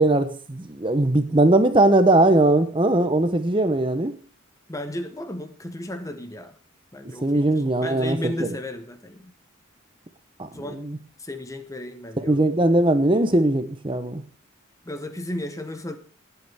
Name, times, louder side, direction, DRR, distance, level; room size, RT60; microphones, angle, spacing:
voice 1, 0.0-4.1 7.2-8.5 10.4-11.0 12.3-14.2, right 2 dB, 25° right, 9 dB, 0.8 m, -20 dB
voice 2, 4.7-6.5 6.9-9.3 10.5-10.8 11.2-12.5 14.9-16.0, left 1 dB, 15° left, 9 dB, 1.0 m, -34 dB
20.5 x 8.1 x 3.5 m, 0.38 s
head